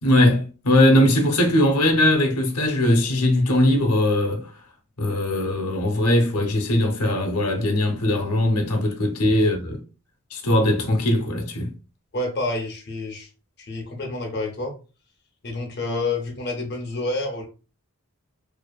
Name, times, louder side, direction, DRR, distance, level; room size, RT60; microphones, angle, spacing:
voice 1, 0.0-4.5 5.0-9.8 10.3-11.7, left 1 dB, 85° left, 0.7 m, -20 dB
voice 2, 12.1-13.3 13.6-14.7 15.4-17.5, left 2 dB, 50° left, 0.5 m, -28 dB
2.5 x 2.4 x 2.2 m
head